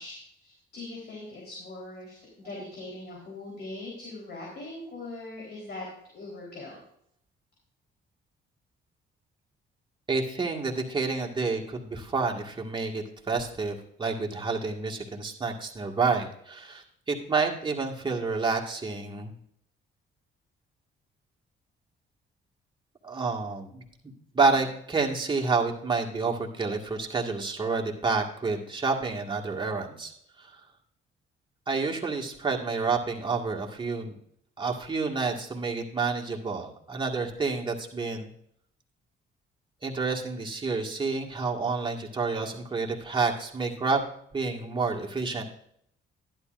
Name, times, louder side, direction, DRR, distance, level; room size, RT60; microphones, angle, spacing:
voice 1, 0.0-5.9 6.1-6.8, left 2 dB, 55° left, -3 dB, 3.9 m, -41 dB
voice 2, 10.1-19.3 23.0-23.8 24.3-30.1 30.4-30.5 31.7-34.1 34.6-38.3 39.8-44.0 44.3-45.4, right 4 dB, 25° right, 0 dB, 1.8 m, -29 dB
11.5 x 11.5 x 2.6 m, 0.68 s
cardioid pair, 90°, 20 cm